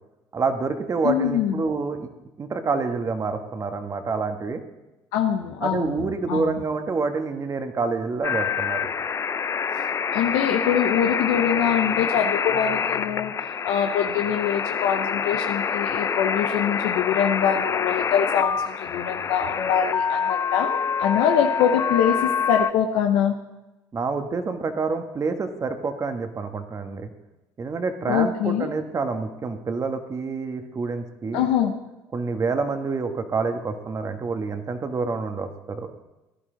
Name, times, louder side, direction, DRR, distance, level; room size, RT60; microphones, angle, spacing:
voice 1, 0.3-2.1 2.4-4.6 5.6-8.9 23.9-27.1 27.6-31.5 32.1-35.9, right 4 dB, 35° right, 7 dB, 1.4 m, -27 dB
voice 2, 1.0-1.6 5.1-6.6 10.1-13.3 13.6-23.4 28.0-28.7 31.3-31.7, left 8 dB, 85° left, 3 dB, 0.8 m, -24 dB
sound 1, 8.2-22.7, left 6 dB, 35° left, 0.4 m, -26 dB
16.5 x 11.0 x 3.9 m, 1.0 s
supercardioid pair, 80°, 9 cm